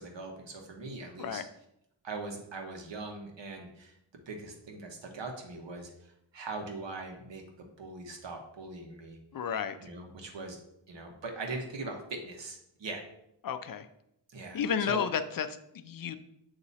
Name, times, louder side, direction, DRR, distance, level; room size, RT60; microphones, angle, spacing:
voice 1, 0.0-1.4 2.0-3.9 4.3-5.9 6.3-9.2 9.8-10.6 10.9-13.0 14.3-14.6 14.9-15.0, right 3 dB, 80° right, 3 dB, 1.3 m, -41 dB
voice 2, 9.3-9.8 13.4-13.9 14.5-16.2, left 7 dB, 50° left, 11 dB, 0.5 m, -32 dB
8.4 x 3.0 x 4.1 m, 0.78 s
wide cardioid pair, 175°, 43 cm